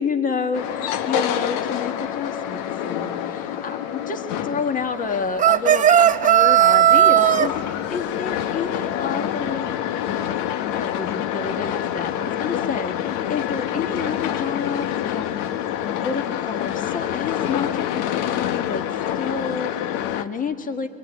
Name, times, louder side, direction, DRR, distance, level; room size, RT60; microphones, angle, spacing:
voice 1, 0.0-9.7 10.0-18.8 19.1-20.9, left 5 dB, 25° left, 6 dB, 1.6 m, -30 dB
sound 1, 0.5-20.2, left 10 dB, 70° left, 1.1 m, -27 dB
sound 2, 5.4-7.5, right 11 dB, 25° right, 0.7 m, -15 dB
25.5 x 23.0 x 9.9 m, 2.3 s
supercardioid pair, 115°, 32 cm